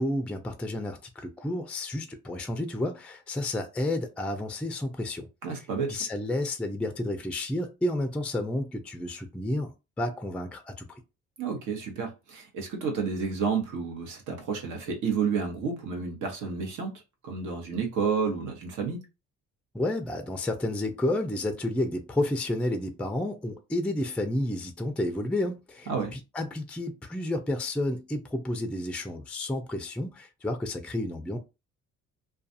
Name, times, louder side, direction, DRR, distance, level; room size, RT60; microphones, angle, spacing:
voice 1, 0.0-5.3 5.9-11.0 19.7-31.4, left 1 dB, 5° left, 0.3 m, -31 dB
voice 2, 5.4-6.0 11.4-16.9 17.2-19.0 25.9-26.1, right 5 dB, 80° right, 1.0 m, -30 dB
2.4 x 2.3 x 2.6 m
cardioid pair, 90°, 30 cm